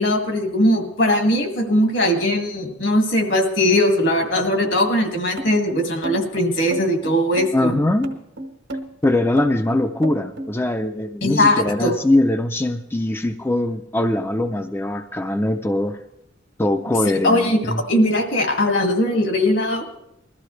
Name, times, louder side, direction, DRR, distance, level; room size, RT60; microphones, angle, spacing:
voice 1, 0.0-7.8 11.2-12.0 17.2-19.9, left 1 dB, 70° left, 3 dB, 2.2 m, -20 dB
sound 1, 5.4-10.5, right 1 dB, 80° right, 1.5 m, -31 dB
voice 2, 7.5-8.1 9.0-16.0 16.6-17.8, left 1 dB, 10° left, 7 dB, 0.4 m, -21 dB
21.0 x 13.5 x 3.2 m, 0.83 s
head